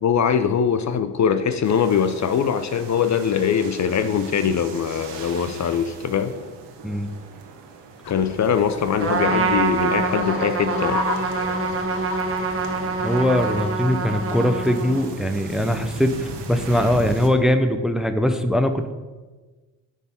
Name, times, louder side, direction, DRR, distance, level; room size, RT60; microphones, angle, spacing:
voice 1, 0.0-6.3 8.1-11.0, left 7 dB, 40° left, 9 dB, 0.6 m, -22 dB
sound 1, 1.6-17.3, right 4 dB, 75° right, 1.3 m, -39 dB
sound 2, 8.0-13.7, left 4 dB, 65° left, 1.2 m, -34 dB
Trumpet, 9.0-15.2, right 4 dB, 30° right, 1.2 m, -25 dB
voice 2, 13.0-18.9, left 1 dB, ahead, 8 dB, 0.6 m, -21 dB
9.2 x 3.7 x 5.5 m, 1.3 s
supercardioid pair, 65°, 42 cm